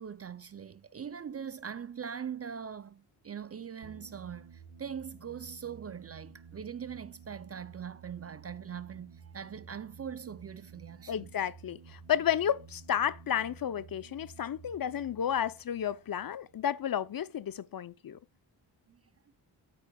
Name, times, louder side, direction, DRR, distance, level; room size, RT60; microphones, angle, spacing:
voice 1, 0.0-11.3 18.9-19.0, right 7 dB, 35° right, 0.5 m, -42 dB
sound 1, 3.8-17.0, right 5 dB, 90° right, 3.1 m, -53 dB
voice 2, 11.1-18.2, left 9 dB, 50° left, 0.7 m, -32 dB
13.0 x 8.1 x 2.3 m
cardioid pair, 90°, 46 cm